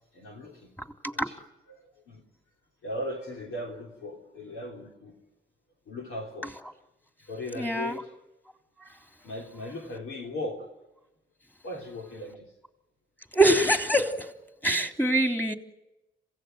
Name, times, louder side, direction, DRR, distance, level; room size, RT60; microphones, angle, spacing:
voice 1, 0.1-0.7 1.2-1.4 1.7-1.8 2.1-2.2 2.8-5.2 5.9-6.5 7.3-8.1 9.2-10.6 11.6-12.4, left 1 dB, 85° left, 0 dB, 3.3 m, -37 dB
voice 2, 7.6-8.0 13.3-14.1 14.6-15.5, right 1 dB, 10° left, 6 dB, 3.4 m, -23 dB
27.0 x 16.5 x 9.1 m, 0.99 s
supercardioid pair, 45°, 21 cm